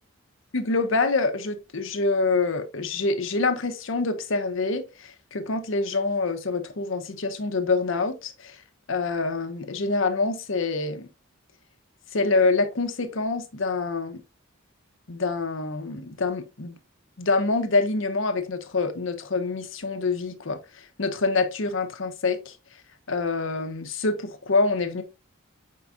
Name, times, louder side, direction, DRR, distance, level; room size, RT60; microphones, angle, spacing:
voice 1, 0.5-8.6 8.9-11.1 12.1-14.2 15.1-16.7 17.2-22.6 23.1-25.0, left 3 dB, 60° left, 0.7 m, -26 dB
4.7 x 4.6 x 2.5 m
head